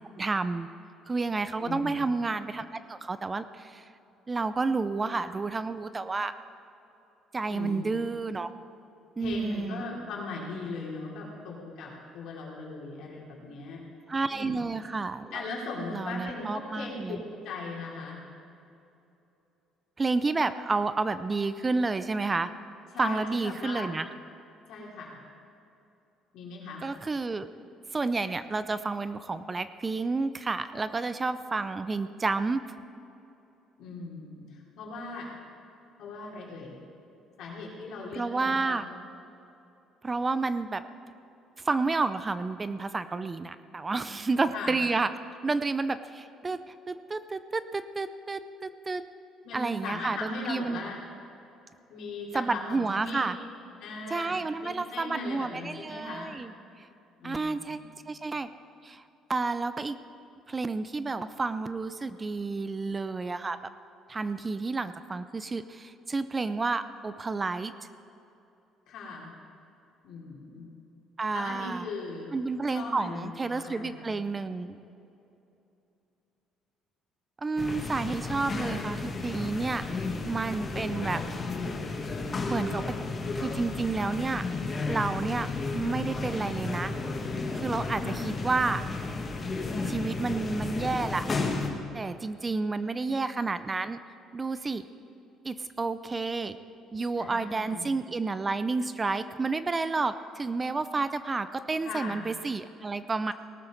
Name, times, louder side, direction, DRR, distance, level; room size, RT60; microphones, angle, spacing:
voice 1, 0.2-0.7 1.1-3.8 4.3-6.3 7.3-8.5 9.2-9.8 14.1-15.4 15.9-17.2 20.0-22.5 23.0-24.1 26.8-27.5 27.9-32.8 38.1-38.8 40.0-40.8 41.6-45.1 45.4-49.0 49.5-50.8 52.3-53.4 54.1-56.5 57.2-58.5 58.8-59.0 59.3-60.0 60.5-63.6 64.1-67.7 71.2-71.9 72.3-74.8 77.4-81.2 82.5-82.9 83.4-84.5 84.8-85.5 85.7-86.9 87.5-88.8 89.8-91.2 91.9-94.0 94.3-94.9 95.4-96.6 96.9-103.3, right 3 dB, 25° right, 12 dB, 0.5 m, -30 dB
voice 2, 1.6-2.0 7.5-7.8 9.2-13.8 14.3-14.6 15.3-18.2 22.9-24.0 24.7-25.2 26.3-26.8 33.8-35.3 36.0-36.7 37.4-38.9 44.5-44.8 49.4-51.0 51.9-53.2 53.8-54.3 54.6-56.4 57.2-58.0 68.9-69.3 70.0-70.7 71.3-72.3 72.7-74.1 87.8-88.1 97.1-97.9 101.8-102.3, left 3 dB, 70° left, -3 dB, 3.6 m, -39 dB
sound 1, 77.6-91.7, left 3 dB, 30° left, 2.0 m, -33 dB
18.5 x 13.0 x 4.0 m, 2.8 s
cardioid pair, 100°, 0 cm